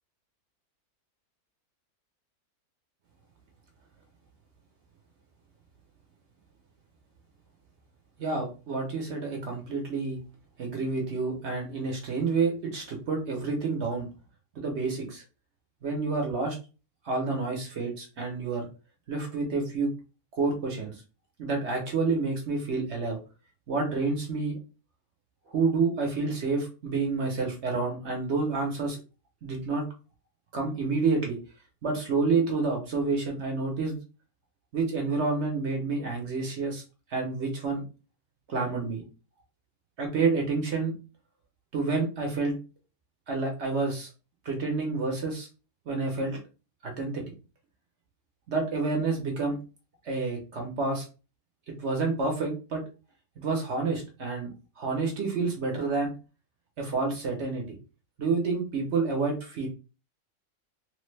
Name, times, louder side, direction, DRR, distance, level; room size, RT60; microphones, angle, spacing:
voice 1, 8.2-10.2 10.6-14.1 14.5-15.2 15.8-16.6 17.0-18.7 19.1-19.9 20.3-21.0 21.4-23.2 23.7-24.6 25.5-29.0 29.4-29.8 30.5-31.4 31.8-34.0 34.7-36.8 37.1-37.8 38.5-39.0 40.0-40.9 41.7-42.6 43.3-44.1 44.4-45.5 45.9-46.4 46.8-47.2 48.5-49.6 50.0-51.1 51.8-52.8 53.4-54.5 54.8-56.1 56.8-57.6 58.2-59.7, right 4 dB, 55° right, 1 dB, 0.9 m, -29 dB
3.2 x 2.1 x 3.1 m, 0.33 s
omnidirectional pair, 1.6 m